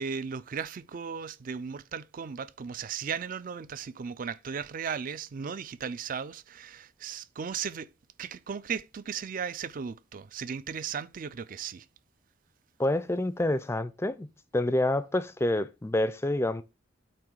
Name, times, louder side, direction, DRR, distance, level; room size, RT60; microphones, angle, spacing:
voice 1, 0.0-7.9 8.2-11.9, right 6 dB, 45° right, 0.4 m, -36 dB
voice 2, 12.8-14.3 14.5-16.6, left 1 dB, 15° left, 0.5 m, -27 dB
8.7 x 3.1 x 6.2 m
head